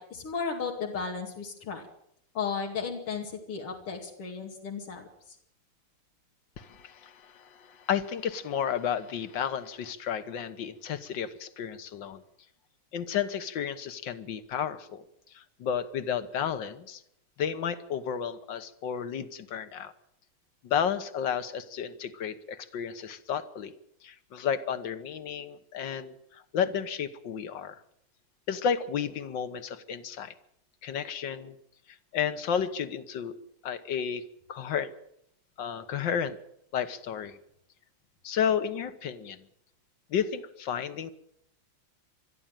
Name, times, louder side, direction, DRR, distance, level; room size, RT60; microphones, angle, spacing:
voice 1, 0.0-1.8 2.4-5.4, left 5 dB, 90° left, 1 dB, 3.4 m, -35 dB
voice 2, 6.6-12.2 12.9-15.1 15.3-17.0 17.4-19.9 20.6-23.7 24.0-27.8 28.5-30.3 30.8-31.6 32.1-33.3 33.6-34.2 34.5-34.9 35.6-36.4 36.7-37.4 38.2-39.4 40.1-41.1, left 8 dB, 60° left, 12 dB, 1.9 m, -32 dB
21.5 x 13.0 x 9.1 m, 0.73 s
omnidirectional pair, 2.4 m